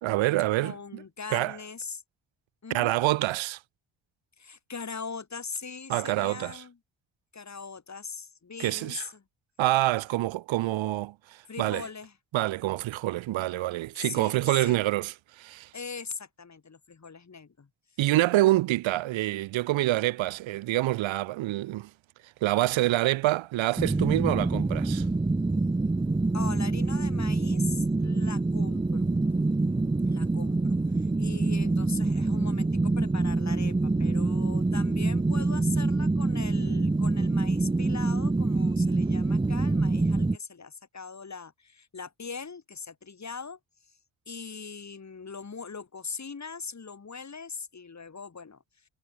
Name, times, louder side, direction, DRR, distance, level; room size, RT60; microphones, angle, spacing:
voice 1, 0.0-1.0 1.3-1.6 2.7-3.6 5.9-6.6 8.6-9.1 9.6-11.9 12.3-15.7 18.0-21.9 22.2-25.1, right 16 dB, 90° right, 2.3 m, -26 dB
voice 2, 0.6-2.0 2.6-2.9 4.4-6.8 7.3-9.2 11.5-12.1 14.0-14.8 15.7-17.7 26.3-29.1 30.1-43.6 44.3-48.6, left 5 dB, 35° left, 4.5 m, -41 dB
wreck under, 23.8-40.4, right 2 dB, 10° right, 0.7 m, -26 dB
cardioid pair, 65°, 45 cm